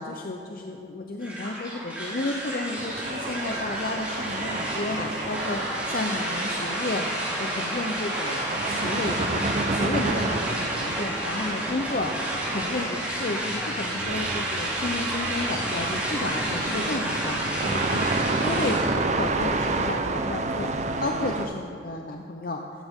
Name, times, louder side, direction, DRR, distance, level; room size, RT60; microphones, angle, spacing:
voice 1, 0.0-5.6 5.9-7.1 7.4-12.1 12.5-18.0 18.4-22.6, left 2 dB, 50° left, 2 dB, 0.6 m, -32 dB
sound 1, 1.2-18.9, right 1 dB, 10° right, 2.4 m, -31 dB
sound 2, 2.7-21.5, right 3 dB, 35° right, 0.6 m, -30 dB
14.5 x 13.5 x 3.7 m, 2.5 s
head